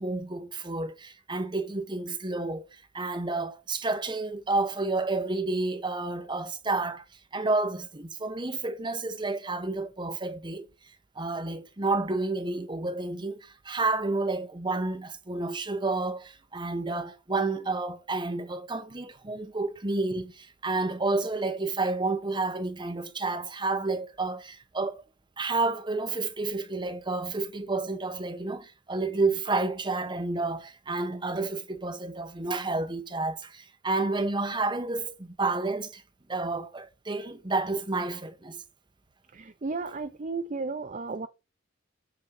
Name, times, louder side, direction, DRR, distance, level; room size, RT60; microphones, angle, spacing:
voice 1, 0.0-2.7 2.9-7.0 7.3-10.7 11.2-25.0 25.4-36.0 36.3-38.6, right 3 dB, 25° right, 1.0 m, -30 dB
voice 2, 39.3-41.3, right 3 dB, 40° right, 0.5 m, -34 dB
8.1 x 4.4 x 5.3 m
head